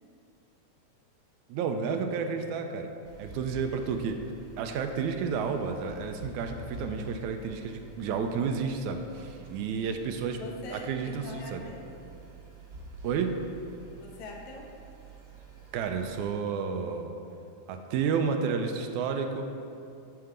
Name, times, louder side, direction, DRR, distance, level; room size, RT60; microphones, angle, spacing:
voice 1, 1.5-2.9 3.2-4.2 4.6-10.4 10.7-11.7 13.0-13.4 15.7-17.1 17.7-19.4, right 6 dB, 90° right, 6 dB, 2.0 m, -31 dB
sound 1, 3.0-16.3, right 2 dB, 50° right, 1.3 m, -48 dB
voice 2, 10.4-11.9 14.0-14.7, left 2 dB, 75° left, -1 dB, 2.4 m, -43 dB
9.5 x 4.8 x 6.7 m, 2.5 s
omnidirectional pair, 3.4 m